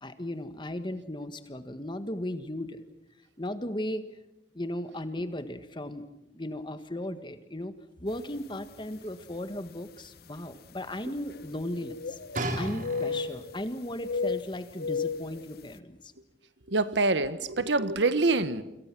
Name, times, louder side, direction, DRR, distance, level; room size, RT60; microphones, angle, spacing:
voice 1, 0.0-2.8 3.4-4.0 4.5-6.0 6.3-7.7 8.0-12.2 12.5-16.1, left 1 dB, 25° left, 10 dB, 1.6 m, -36 dB
sound 1, 8.4-8.5 9.3-9.4 11.3-12.5 12.8-13.6 14.0-15.4, left 5 dB, 60° left, 0.8 m, -33 dB
sound 2, 12.3-13.6 14.4-14.5, right 1 dB, 50° right, 4.0 m, -34 dB
voice 2, 16.7-18.6, right 3 dB, 85° right, 13 dB, 1.4 m, -25 dB
28.0 x 26.5 x 6.1 m, 0.94 s
head